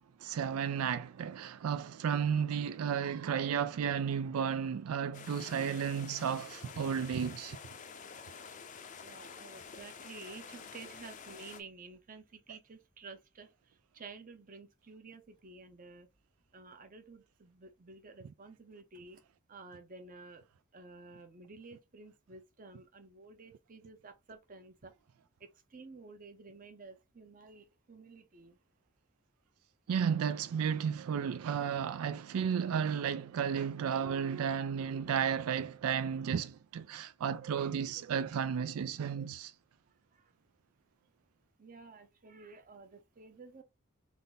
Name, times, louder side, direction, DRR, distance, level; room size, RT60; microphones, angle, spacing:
voice 1, 0.2-7.6 29.9-39.5, right 7 dB, 90° right, 0.4 m, -33 dB
sound 1, 5.1-11.6, left 6 dB, 35° left, 0.5 m, -49 dB
voice 2, 9.0-16.1 16.5-19.2 19.5-20.4 20.7-24.9 25.4-28.6 40.1-40.3 41.6-43.6, right 3 dB, 40° right, 0.7 m, -52 dB
3.6 x 2.6 x 3.9 m
head